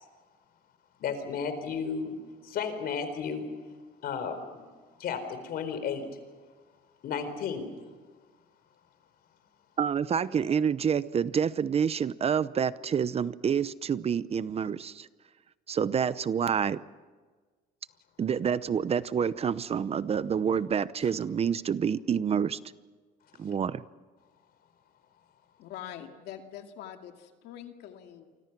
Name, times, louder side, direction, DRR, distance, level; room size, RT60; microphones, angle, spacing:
voice 1, 1.0-2.2 2.4-3.5 4.0-4.6 5.0-6.0 7.0-7.8, left 6 dB, 65° left, 9 dB, 4.3 m, -33 dB
voice 2, 9.8-15.1 15.7-16.8 18.2-22.6 23.4-23.8, right 7 dB, 35° right, 16 dB, 0.8 m, -28 dB
voice 3, 25.6-28.3, left 10 dB, 85° left, 5 dB, 2.3 m, -44 dB
28.5 x 25.0 x 6.1 m, 1.4 s
cardioid pair, 110°, 17 cm